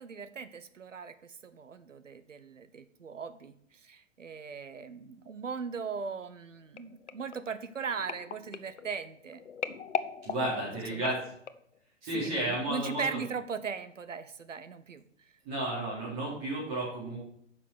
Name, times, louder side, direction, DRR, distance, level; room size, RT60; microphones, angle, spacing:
voice 1, 0.0-9.4 10.4-10.5 10.9-11.1 12.1-15.0, right 5 dB, 70° right, 12 dB, 1.1 m, -39 dB
sound 1, 6.8-11.8 12.4-12.6 12.9-13.0, left 7 dB, 65° left, 0.8 m, -40 dB
voice 2, 10.2-11.2 12.0-13.2 15.4-17.2, right 1 dB, 30° right, -6 dB, 4.2 m, -32 dB
10.0 x 6.1 x 6.3 m, 0.69 s
figure-of-eight pair, 120°, 39 cm